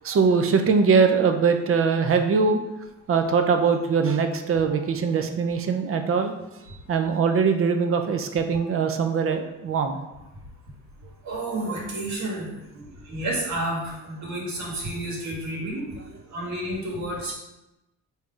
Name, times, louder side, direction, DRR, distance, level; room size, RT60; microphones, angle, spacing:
voice 1, 0.0-2.6 3.1-6.3 6.9-10.0, right 5 dB, 45° right, 6 dB, 0.6 m, -22 dB
voice 2, 11.2-15.9 16.3-17.3, right 1 dB, 70° right, -2 dB, 1.4 m, -31 dB
4.6 x 2.8 x 3.7 m, 0.96 s
cardioid pair, 90°, 30 cm